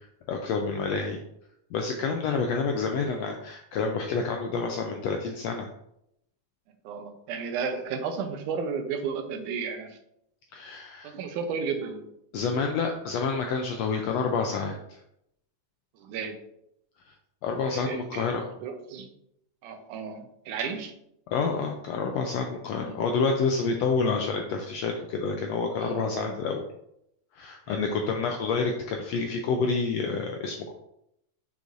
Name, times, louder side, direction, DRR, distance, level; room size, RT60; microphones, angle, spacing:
voice 1, 0.3-1.2 1.7-5.7 10.5-11.1 12.3-15.0 17.4-18.4 21.3-26.7 27.3-30.7, left 4 dB, 85° left, 3 dB, 1.5 m, -28 dB
voice 2, 6.8-10.0 11.0-12.1 16.0-16.4 17.6-18.3 18.6-19.1 19.6-21.0 22.8-23.0 25.8-26.4 27.7-27.9, right 5 dB, 85° right, 7 dB, 2.2 m, -33 dB
6.7 x 6.4 x 2.5 m, 0.77 s
omnidirectional pair, 3.6 m